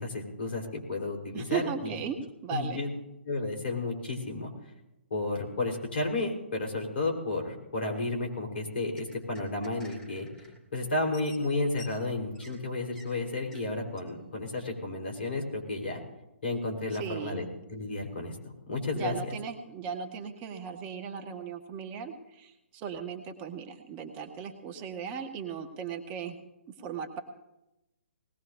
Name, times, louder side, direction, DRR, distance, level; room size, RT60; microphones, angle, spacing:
voice 1, 0.0-2.0 2.5-2.9 3.2-4.5 5.1-10.3 10.7-16.0 16.4-18.4 18.7-19.1, left 2 dB, 65° left, 2 dB, 3.9 m, -32 dB
voice 2, 1.3-2.2 2.4-2.8 17.0-17.5 18.9-26.4 26.8-27.2, right 7 dB, 25° right, 5 dB, 1.2 m, -37 dB
sound 1, 9.0-10.6 10.9-12.6 12.9-13.1 13.5-13.7 14.0-14.1, left 2 dB, 10° left, 2.6 m, -53 dB
20.0 x 17.5 x 2.6 m, 0.92 s
figure-of-eight pair, 130°, 6 cm